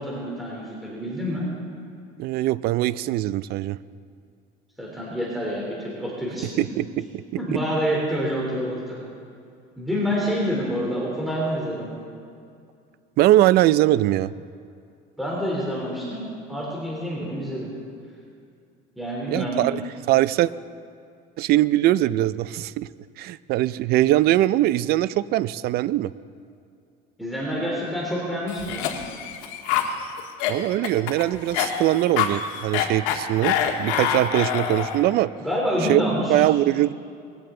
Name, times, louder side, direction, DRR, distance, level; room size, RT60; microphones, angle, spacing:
voice 1, 0.0-1.5 4.8-6.6 7.4-9.0 9.8-11.9 15.2-17.7 19.0-19.6 27.2-28.9 35.4-36.5, equal, ahead, -5 dB, 3.3 m, -27 dB
voice 2, 2.2-3.8 6.6-6.8 7.1-7.2 7.5-7.6 13.2-14.3 19.3-19.8 20.1-20.5 21.4-22.9 23.2-26.1 30.5-35.3 35.9-36.0 36.3-36.9, right 15 dB, 55° right, 17 dB, 0.5 m, -21 dB
Cough, 28.5-35.1, left 8 dB, 85° left, 1.6 m, -26 dB
21.0 x 16.0 x 3.8 m, 2.4 s
cardioid pair, 125°, 20 cm